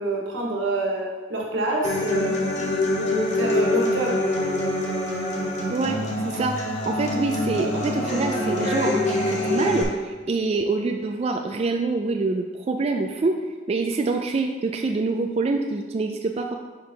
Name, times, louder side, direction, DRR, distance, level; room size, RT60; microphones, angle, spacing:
voice 1, 0.0-2.4 3.0-4.2, right 2 dB, 90° right, -1 dB, 1.4 m, -26 dB
Human voice / Acoustic guitar, 1.8-9.8, left 1 dB, 40° left, 1.1 m, -25 dB
voice 2, 5.7-13.4 13.7-16.6, right 3 dB, 35° right, 4 dB, 0.3 m, -26 dB
5.1 x 5.0 x 4.4 m, 1.5 s
head